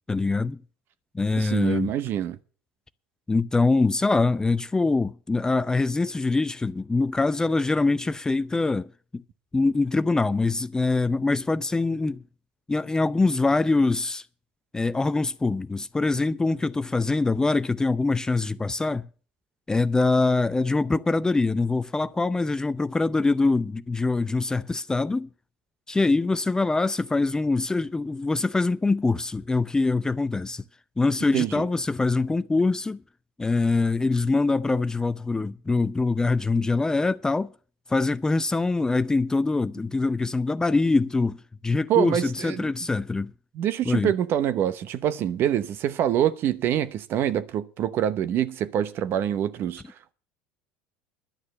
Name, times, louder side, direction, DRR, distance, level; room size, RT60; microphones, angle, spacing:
voice 1, 0.1-0.6 1.1-1.9 3.3-9.2 9.5-12.2 12.7-14.2 14.7-19.0 19.7-25.3 25.9-30.6 31.0-33.0 33.4-37.5 37.9-41.4 41.6-43.3 43.9-44.1, left 3 dB, 15° left, 0.5 m, -24 dB
voice 2, 1.4-2.4 31.3-31.6 41.9-42.7 43.5-49.8, right 10 dB, 50° right, 0.9 m, -25 dB
11.5 x 6.4 x 9.3 m
hypercardioid pair, 80°, 5 cm